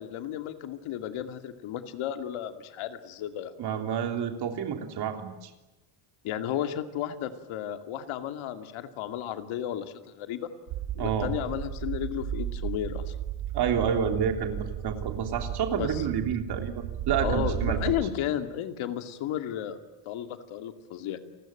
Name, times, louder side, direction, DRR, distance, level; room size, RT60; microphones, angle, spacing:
voice 1, 0.0-3.5 6.2-10.5 10.9-13.2 15.7-16.0 17.2-19.8 20.1-21.2, left 10 dB, 75° left, 7 dB, 2.6 m, -33 dB
voice 2, 3.6-5.5 11.0-11.3 13.5-14.6 14.8-17.8, right 7 dB, 55° right, 5 dB, 3.4 m, -29 dB
sound 1, 10.7-17.9, right 10 dB, 90° right, 5.9 m, -34 dB
30.0 x 20.5 x 9.1 m, 1.1 s
cardioid pair, 175°, 48 cm